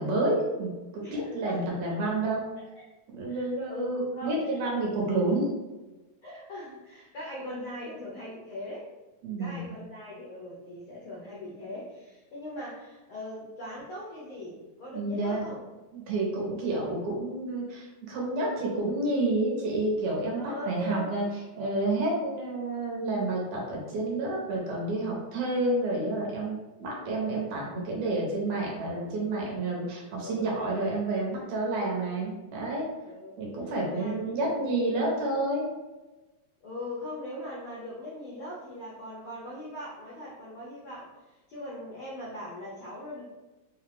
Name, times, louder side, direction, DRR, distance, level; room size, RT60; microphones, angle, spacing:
voice 1, 0.0-2.4 3.1-5.5 9.2-9.7 14.9-15.4 15.9-21.3 21.6-32.9 33.4-35.7, right 2 dB, 75° right, -3 dB, 2.1 m, -29 dB
voice 2, 1.0-2.0 3.3-4.8 6.2-8.9 9.4-15.6 20.3-21.3 30.2-30.5 33.0-33.3 33.9-34.5 36.6-43.2, left 1 dB, 75° left, -6 dB, 1.2 m, -40 dB
5.1 x 2.4 x 3.4 m, 1.1 s
omnidirectional pair, 3.5 m